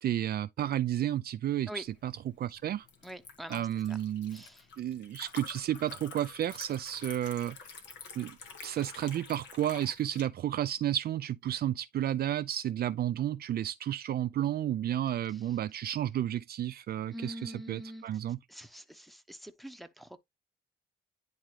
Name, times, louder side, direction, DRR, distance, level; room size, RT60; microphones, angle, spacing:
voice 1, 0.0-2.9 3.5-4.4 4.8-7.6 8.2-18.4, right 11 dB, 55° right, 0.4 m, -32 dB
Liquid, 1.9-10.2, left 5 dB, 80° left, 1.8 m, -49 dB
voice 2, 3.0-4.0 4.3-4.7 15.3-15.4 17.1-18.1 18.5-20.2, equal, ahead, 1.0 m, -45 dB
10.5 x 3.6 x 3.2 m
cardioid pair, 75°, 18 cm